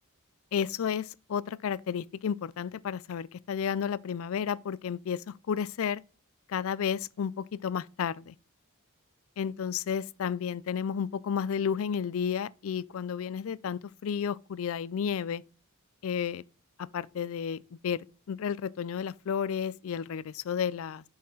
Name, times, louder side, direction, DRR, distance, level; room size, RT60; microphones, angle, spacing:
voice 1, 0.5-6.0 6.5-8.3 9.4-15.4 16.0-16.4 16.9-21.0, left 7 dB, 65° left, 0.3 m, -32 dB
6.3 x 5.6 x 4.0 m
head